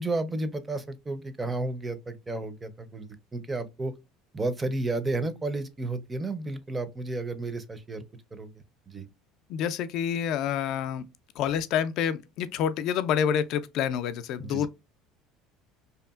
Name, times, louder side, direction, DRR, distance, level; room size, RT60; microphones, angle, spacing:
voice 1, 0.0-3.9 4.3-8.0 8.3-8.5 8.9-9.1 14.4-14.7, right 2 dB, 20° right, 0.5 m, -32 dB
voice 2, 9.5-11.1 11.4-14.7, left 8 dB, 65° left, 0.3 m, -28 dB
2.7 x 2.4 x 2.3 m
supercardioid pair, 100°, 0 cm